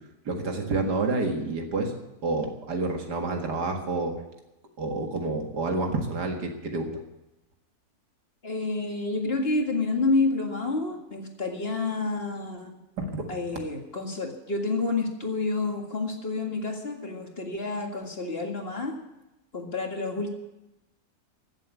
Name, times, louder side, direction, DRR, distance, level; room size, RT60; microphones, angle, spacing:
voice 1, 0.3-1.9 2.2-4.2 4.8-7.0 13.0-13.4, right 3 dB, 85° right, 3 dB, 2.4 m, -29 dB
voice 2, 8.4-12.8 13.3-19.0 19.5-20.3, left 3 dB, 40° left, 2 dB, 2.1 m, -29 dB
15.5 x 7.6 x 9.6 m, 0.96 s
omnidirectional pair, 1.7 m